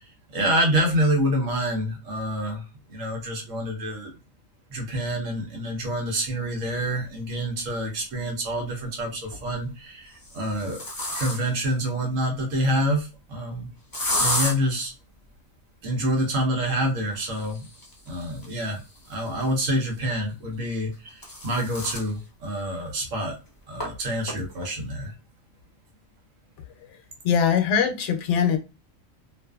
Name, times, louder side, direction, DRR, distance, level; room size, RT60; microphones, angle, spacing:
voice 1, 0.3-4.1 4.7-10.8 11.1-13.7 14.2-14.9 15.8-17.7 18.1-18.8 19.1-23.3 23.7-25.1, right 1 dB, 75° right, 1 dB, 1.2 m, -27 dB
sound 1, 7.5-7.6 9.1-9.5 10.1-11.7 13.9-14.5 17.1-19.8 20.8-22.1 22.6-22.7 23.0-23.1 23.8-23.9 24.3-24.7, left 1 dB, 25° left, 0.5 m, -32 dB
voice 2, 26.9-28.6, left 7 dB, 70° left, 7 dB, 0.9 m, -22 dB
2.5 x 2.5 x 2.3 m, 0.29 s
omnidirectional pair, 1.3 m